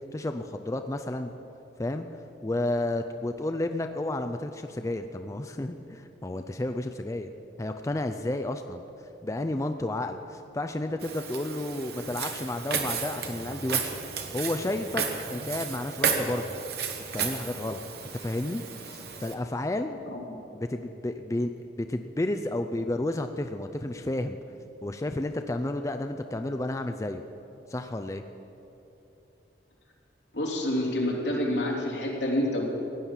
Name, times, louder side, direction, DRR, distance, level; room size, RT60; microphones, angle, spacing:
voice 1, 0.1-1.3 1.8-2.1 2.4-7.3 7.6-8.8 9.2-14.0 14.3-15.0 15.3-16.5 17.1-17.8 18.2-20.0 20.5-21.5 21.8-24.4 24.8-27.2 27.7-28.2, left 1 dB, 15° left, 7 dB, 0.4 m, -31 dB
Walk footsteps, 11.0-19.3, right 5 dB, 60° right, 1.3 m, -33 dB
voice 2, 30.3-32.6, left 1 dB, 80° left, -2 dB, 3.1 m, -27 dB
16.0 x 9.8 x 7.3 m, 3.0 s
head